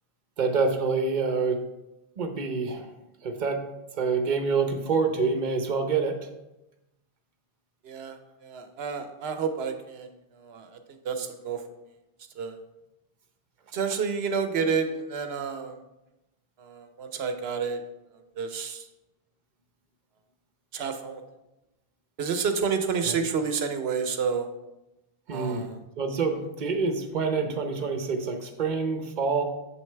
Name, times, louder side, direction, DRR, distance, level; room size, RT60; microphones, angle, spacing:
voice 1, 0.4-1.6 2.2-2.9 3.2-3.6 3.9-6.2 23.0-23.2 25.3-25.7 26.0-29.4, right 4 dB, 50° right, 6 dB, 0.9 m, -27 dB
voice 2, 7.8-11.6 12.4-12.6 13.7-15.8 16.6-17.8 18.1-18.9 20.7-21.2 22.2-24.5 25.3-25.8, right 5 dB, 80° right, 7 dB, 1.0 m, -30 dB
7.7 x 6.4 x 3.3 m, 0.94 s
omnidirectional pair, 1.1 m